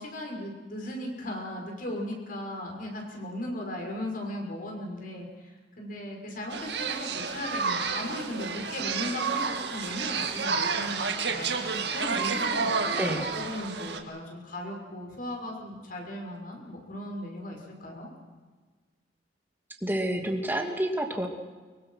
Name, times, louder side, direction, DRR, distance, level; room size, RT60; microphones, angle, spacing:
voice 1, 0.0-18.1, left 1 dB, 50° left, 1 dB, 6.3 m, -37 dB
sound 1, 6.5-14.0, right 5 dB, 70° right, 2.0 m, -30 dB
voice 2, 19.8-21.3, right 1 dB, 10° right, 3 dB, 2.6 m, -28 dB
24.5 x 23.5 x 5.8 m, 1.4 s
head